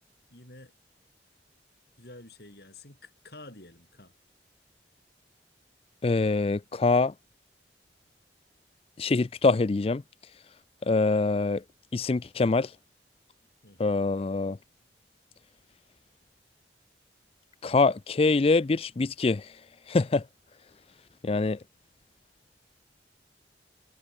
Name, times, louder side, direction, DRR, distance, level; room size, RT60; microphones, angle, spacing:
voice 1, 0.3-0.7 2.0-4.1 13.6-14.0, left 2 dB, 60° left, 5.7 m, -49 dB
voice 2, 6.0-7.1 9.0-10.0 10.8-11.6 11.9-12.7 13.8-14.6 17.6-19.5 19.9-20.2 21.2-21.6, left 3 dB, 35° left, 0.4 m, -24 dB
head